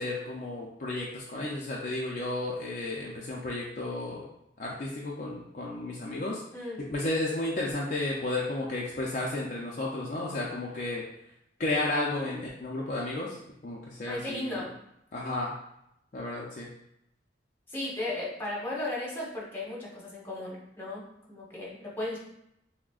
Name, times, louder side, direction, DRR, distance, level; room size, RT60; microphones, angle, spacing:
voice 1, 0.0-4.3 4.6-6.4 6.9-11.0 11.6-13.4 13.6-14.6 15.1-15.5 16.1-16.7, left 2 dB, 45° left, -3 dB, 0.5 m, -33 dB
voice 2, 14.1-14.8 17.7-21.0 21.3-22.2, left 1 dB, 15° left, -5 dB, 1.1 m, -35 dB
5.9 x 2.1 x 2.4 m, 0.79 s
head